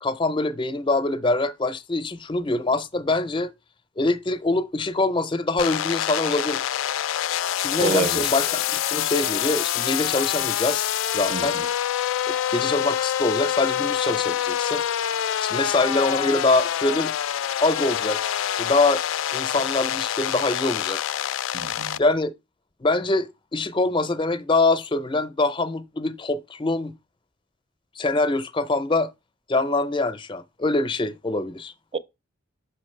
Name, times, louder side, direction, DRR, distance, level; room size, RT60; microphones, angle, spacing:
voice 1, 0.0-3.5 4.0-6.6 7.6-8.6 8.9-11.6 12.3-14.8 15.4-17.1 17.6-18.2 18.5-19.0 19.3-21.0 22.0-22.3 22.8-26.9 28.0-29.1 29.5-31.7, left 2 dB, 25° left, 0.6 m, -24 dB
sound 1, 5.6-22.0, left 10 dB, 65° left, 0.3 m, -26 dB
voice 2, 7.8-8.3 11.3-11.7 21.5-22.0 31.9-32.0, right 4 dB, 30° right, 0.5 m, -28 dB
6.2 x 5.7 x 3.1 m
head